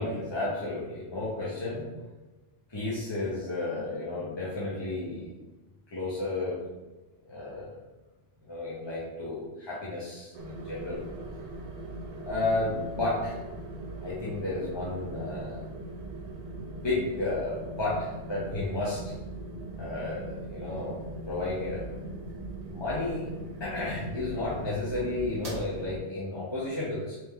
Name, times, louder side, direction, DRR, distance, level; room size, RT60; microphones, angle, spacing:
voice 1, 0.0-1.9 2.7-5.3 5.9-6.6 7.3-7.7 8.4-11.0 12.2-13.4 14.0-15.6 16.6-19.1 19.8-21.8 22.7-23.3 23.6-27.2, left 2 dB, 30° left, -7 dB, 0.6 m, -32 dB
sound 1, 10.3-26.0, right 1 dB, 45° right, 0.5 m, -40 dB
3.3 x 3.0 x 3.6 m, 1.1 s
omnidirectional pair, 1.2 m